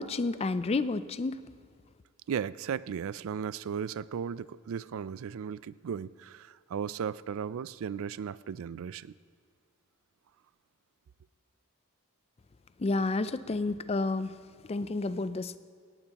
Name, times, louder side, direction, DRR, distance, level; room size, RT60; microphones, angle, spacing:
voice 1, 0.0-1.4 12.8-14.3 14.7-15.6, left 3 dB, 25° left, 14 dB, 0.4 m, -30 dB
voice 2, 2.3-9.1, right 7 dB, 65° right, 18 dB, 0.4 m, -36 dB
18.5 x 17.5 x 2.9 m, 2.1 s
head